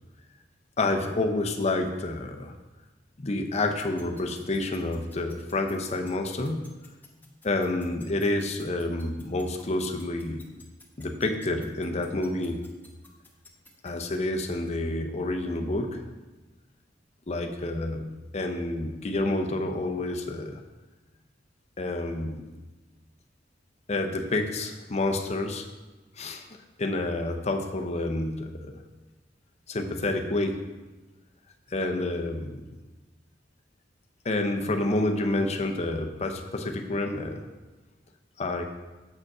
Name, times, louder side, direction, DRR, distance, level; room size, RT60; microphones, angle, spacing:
voice 1, 0.8-2.5 3.2-6.7 7.4-10.5 11.0-12.7 13.8-16.0 17.3-20.6 21.8-22.4 23.9-25.7 26.2-28.7 29.7-30.6 31.7-32.6 34.2-37.4 38.4-38.6, left 2 dB, 35° left, 4 dB, 0.7 m, -29 dB
sound 1, 3.8-13.9, left 4 dB, 10° left, 0.9 m, -52 dB
7.5 x 5.1 x 4.8 m, 1.2 s
head